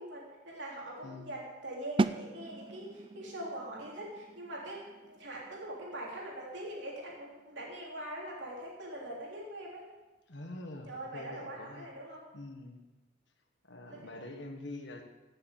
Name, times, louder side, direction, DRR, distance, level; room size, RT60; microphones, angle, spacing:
voice 1, 0.0-9.9 10.9-12.2 13.8-14.0, right 1 dB, 70° right, -4 dB, 3.2 m, -43 dB
voice 2, 1.0-1.3 10.3-11.9 12.3-12.8 13.6-15.0, left 2 dB, 70° left, 4 dB, 1.4 m, -45 dB
sound 1, 2.0-7.7, right 3 dB, 25° right, 0.3 m, -38 dB
16.5 x 6.8 x 6.6 m, 1.1 s
head